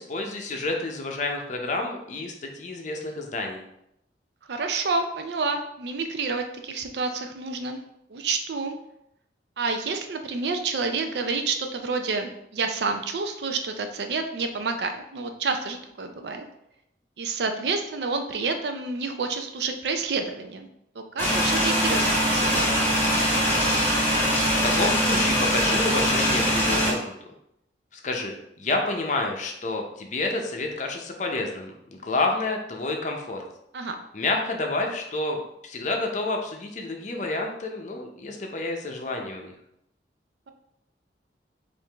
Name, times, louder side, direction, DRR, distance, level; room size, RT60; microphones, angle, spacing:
voice 1, 0.0-3.6 24.6-27.0 27.9-33.4 34.1-39.5, left 2 dB, 45° left, 2 dB, 0.6 m, -29 dB
voice 2, 4.5-7.8 8.1-8.7 9.6-16.4 17.2-20.7 21.0-23.0 33.7-34.0, right 4 dB, 70° right, 6 dB, 0.5 m, -29 dB
sound 1, 21.2-26.9, equal, 15° left, 1.0 m, -22 dB
4.6 x 2.6 x 3.4 m, 0.80 s
head